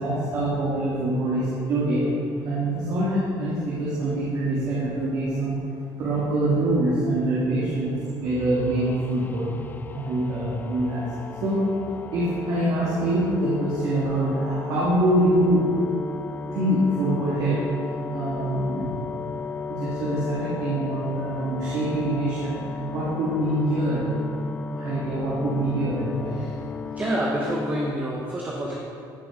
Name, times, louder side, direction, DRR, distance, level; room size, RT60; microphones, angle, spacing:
voice 1, 0.0-2.1 2.4-5.6 6.0-9.5 9.9-11.1 11.4-11.7 12.1-15.6 16.5-17.6 18.1-19.0 19.7-22.6 22.9-24.0 24.8-26.4, right 1 dB, 55° right, -8 dB, 3.1 m, -24 dB
sound 1, 8.3-27.9, left 4 dB, 25° left, 0.4 m, -35 dB
voice 2, 26.9-28.7, right 1 dB, 20° right, -3 dB, 1.5 m, -28 dB
14.5 x 6.7 x 5.5 m, 2.4 s
cardioid pair, 130°, 8 cm